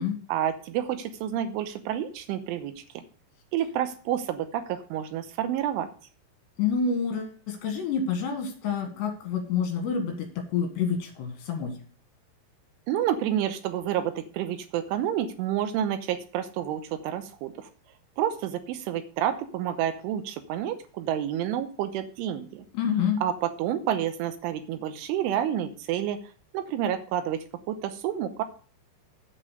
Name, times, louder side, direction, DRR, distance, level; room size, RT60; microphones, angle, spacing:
voice 1, 0.3-3.0 3.5-5.9 12.9-17.7 18.2-22.6 23.2-26.2 26.5-28.4, right 10 dB, 85° right, 9 dB, 3.2 m, -29 dB
voice 2, 6.6-11.8 22.7-23.2, left 6 dB, 65° left, 4 dB, 3.6 m, -28 dB
8.2 x 7.4 x 6.4 m, 0.42 s
omnidirectional pair, 5.8 m